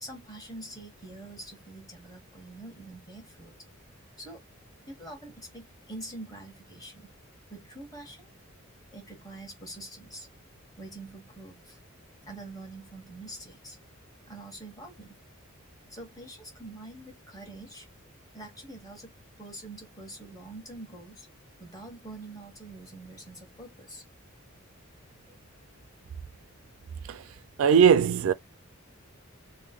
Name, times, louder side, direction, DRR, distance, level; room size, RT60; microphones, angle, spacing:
voice 1, 0.0-3.6 4.2-4.4 4.9-7.1 7.5-8.3 8.9-10.3 10.8-11.8 12.2-13.8 14.3-15.2 15.9-17.9 18.3-19.1 19.4-21.3 21.6-24.0, right 2 dB, 15° left, 1.3 m, -45 dB
voice 2, 27.6-28.3, right 7 dB, 70° right, 0.3 m, -19 dB
3.1 x 2.2 x 3.5 m
head